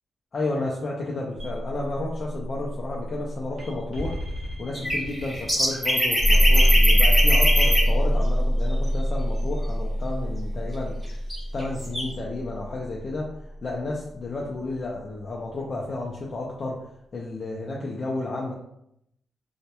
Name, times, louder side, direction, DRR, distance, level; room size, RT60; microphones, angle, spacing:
voice 1, 0.3-4.2 4.6-11.0 11.5-13.3 13.6-16.8 17.1-18.5, left 2 dB, 35° left, -3 dB, 0.3 m, -32 dB
sound 1, 1.4-13.4, equal, 60° right, 0.9 m, -24 dB
sound 2, 4.7-7.8 11.3-11.4 11.6-12.0, equal, 5° left, 0.7 m, -22 dB
2.1 x 2.0 x 2.8 m, 0.76 s
wide cardioid pair, 150°, 0 cm